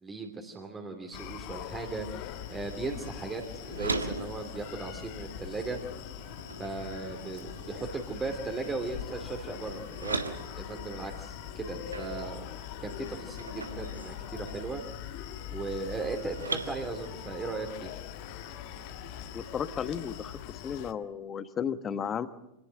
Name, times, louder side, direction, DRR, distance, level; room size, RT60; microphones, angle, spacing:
voice 1, 0.0-5.8 6.6-10.2 10.6-12.4 12.8-14.8 15.5-17.9, right 3 dB, 15° right, 2 dB, 2.8 m, -37 dB
Screaming, 1.1-20.9, left 12 dB, 45° left, 1.4 m, -42 dB
sound 1, 2.3-20.4, right 3 dB, 80° right, 1.7 m, -42 dB
voice 2, 19.3-20.3 20.6-22.3, left 7 dB, 25° left, 12 dB, 1.3 m, -33 dB
26.5 x 18.5 x 7.8 m, 0.89 s
figure-of-eight pair, 90°, 0 cm